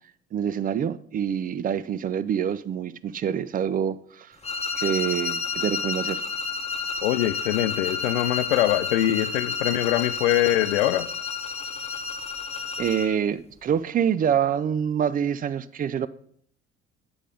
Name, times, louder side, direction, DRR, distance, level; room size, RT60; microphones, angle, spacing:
voice 1, 0.3-4.4 4.8-6.2 12.8-16.1, right 8 dB, 25° right, 0.4 m, -26 dB
sound 1, 4.4-13.2, left 4 dB, 20° left, 1.2 m, -30 dB
voice 2, 7.0-11.1, left 14 dB, 70° left, 0.6 m, -23 dB
10.0 x 5.2 x 5.0 m
figure-of-eight pair, 60°, 35 cm